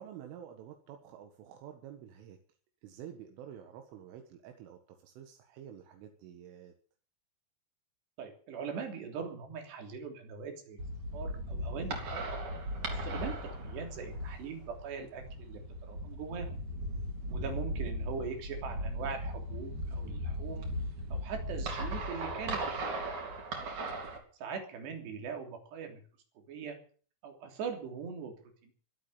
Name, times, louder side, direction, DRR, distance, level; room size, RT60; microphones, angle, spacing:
voice 1, 0.0-2.4 2.8-6.7, right 9 dB, 85° right, 5 dB, 4.1 m, -49 dB
voice 2, 8.2-10.8 11.1-12.2 12.9-15.6 15.9-16.6 17.3-20.7 21.1-23.3 24.4-26.0 26.5-26.8 27.2-28.3 28.6-28.7, right 6 dB, 60° right, 4 dB, 5.3 m, -41 dB
sound 1, 10.8-24.2, right 1 dB, 40° right, 4.5 m, -37 dB
23.5 x 8.5 x 7.0 m, 0.43 s
omnidirectional pair, 5.6 m